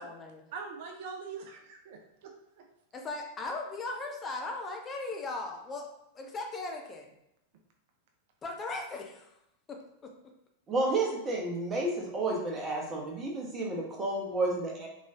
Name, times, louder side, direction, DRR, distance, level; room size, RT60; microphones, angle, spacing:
voice 1, 0.0-0.4 2.9-5.9 6.1-7.1 8.4-9.3 9.7-10.1, left 3 dB, 25° left, 2 dB, 0.5 m, -38 dB
voice 2, 0.5-2.6, right 5 dB, 50° right, 2 dB, 0.4 m, -43 dB
voice 3, 10.7-14.9, right 2 dB, 20° right, -1 dB, 0.9 m, -31 dB
3.8 x 3.1 x 2.5 m, 0.82 s
figure-of-eight pair, 90°, 0 cm